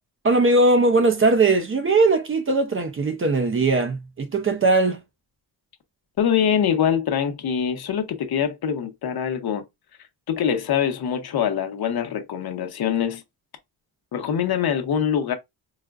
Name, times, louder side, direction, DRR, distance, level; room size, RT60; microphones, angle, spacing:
voice 1, 0.2-5.0, right 3 dB, 30° right, 0.5 m, -19 dB
voice 2, 6.2-9.6 10.3-13.2 14.1-15.3, left 8 dB, 60° left, 0.8 m, -24 dB
4.8 x 2.2 x 2.3 m
wide cardioid pair, 130°, 41 cm